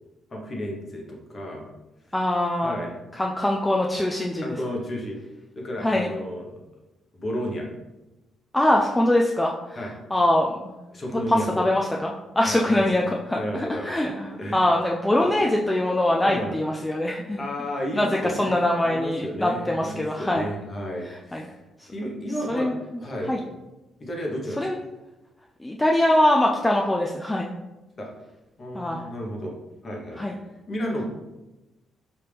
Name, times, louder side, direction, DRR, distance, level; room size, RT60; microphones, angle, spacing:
voice 1, 0.3-1.6 2.6-2.9 4.4-5.3 5.5-6.6 7.1-7.7 9.7-9.9 10.9-11.7 12.4-12.8 13.3-14.1 14.4-14.7 15.2-15.3 16.2-16.5 17.4-18.6 18.8-21.6 21.9-22.7 23.0-23.3 24.0-24.7 28.0-28.1 28.6-29.5 29.8-30.2 30.7-31.0, equal, 40° left, -1 dB, 1.1 m, -32 dB
voice 2, 2.1-2.8 3.1-4.6 5.8-6.1 8.5-9.8 10.1-10.7 11.3-17.4 17.9-20.4 21.0-21.4 21.8-21.9 22.5-22.7 23.3-23.4 24.6-24.8 25.6-27.6 28.7-29.0 30.2-30.4, left 1 dB, 10° left, -1 dB, 0.4 m, -23 dB
5.3 x 2.8 x 3.4 m, 1.0 s
cardioid pair, 90°, 0 cm